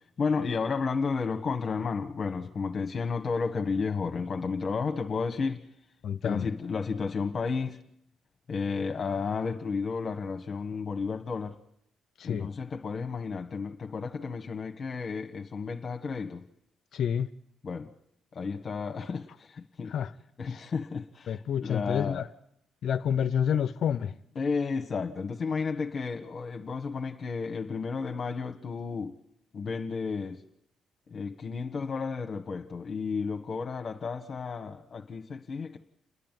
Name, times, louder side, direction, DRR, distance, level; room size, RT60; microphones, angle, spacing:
voice 1, 0.2-5.6 6.2-7.8 8.5-11.6 12.2-16.4 17.6-17.9 18.3-19.9 20.4-22.2 24.3-29.1 29.5-30.4 31.1-35.8, left 5 dB, 45° left, 1.4 m, -32 dB
voice 2, 6.0-6.5 12.2-12.5 16.9-17.3 19.9-20.1 21.3-22.2 22.8-24.1, left 8 dB, 65° left, 0.8 m, -28 dB
29.5 x 10.0 x 9.2 m
cardioid pair, 90°, 0 cm